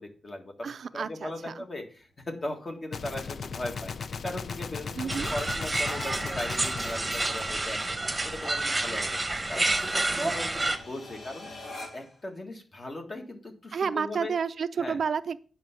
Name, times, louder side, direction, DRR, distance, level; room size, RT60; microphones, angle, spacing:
voice 1, 0.0-7.9 8.2-9.2 9.5-11.5 11.9-14.3 14.8-15.0, left 1 dB, 35° left, 4 dB, 1.8 m, -38 dB
voice 2, 0.6-1.6 5.0-5.3 13.7-15.4, right 6 dB, 65° right, 11 dB, 0.4 m, -31 dB
sound 1, 2.0-12.2, left 2 dB, 75° left, 2.7 m, -50 dB
Gunshot gunfire, 2.9-8.1, left 5 dB, 60° left, 0.4 m, -38 dB
sound 2, 5.1-10.8, right 2 dB, 15° right, 1.1 m, -29 dB
9.1 x 5.8 x 5.9 m, 0.39 s
wide cardioid pair, 150°, 0 cm